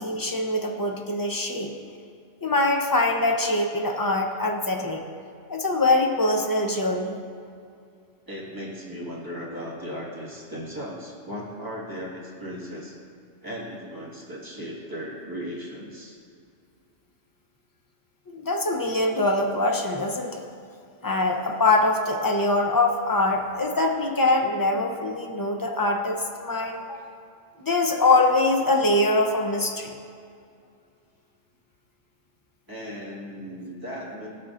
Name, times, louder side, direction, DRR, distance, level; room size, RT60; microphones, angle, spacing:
voice 1, 0.0-1.7 2.4-5.0 5.5-7.2 18.3-20.4 21.0-27.0 27.6-29.9, left 2 dB, 25° left, 2 dB, 0.6 m, -23 dB
voice 2, 8.3-12.9 13.4-16.2 32.7-34.3, equal, 15° right, -6 dB, 1.8 m, -36 dB
17.0 x 5.9 x 2.5 m, 2.4 s
omnidirectional pair, 1.3 m